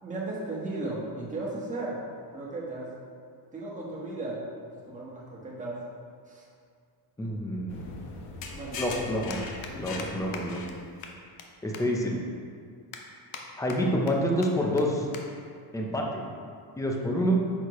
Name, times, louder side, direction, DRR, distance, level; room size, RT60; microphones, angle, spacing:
voice 1, 0.0-2.0 2.3-2.9 3.5-4.4 4.8-5.8 6.3-6.4 8.5-9.2, right 2 dB, 15° right, -5 dB, 1.4 m, -35 dB
sound 1, 6.6-6.7 8.1-8.2 8.4-8.6 8.9-9.0 9.3-9.7 10.0-10.1 10.3-10.4 10.7-10.8 11.0-11.5 11.7-11.8 12.3-12.4 12.9-13.4 13.7-14.1 14.4-14.5 14.8-14.9 15.1-15.2 15.6-15.8 16.6-16.8, left 7 dB, 85° left, 1.1 m, -42 dB
voice 2, 7.2-8.0 8.8-9.4 9.7-10.6 11.6-12.1 13.6-15.1 15.7-16.2 16.8-17.4, equal, 5° left, -1 dB, 0.6 m, -27 dB
sound 2, 7.7-11.1, left 4 dB, 65° left, 1.1 m, -40 dB
9.6 x 6.4 x 3.1 m, 2.2 s
cardioid pair, 180°, 45 cm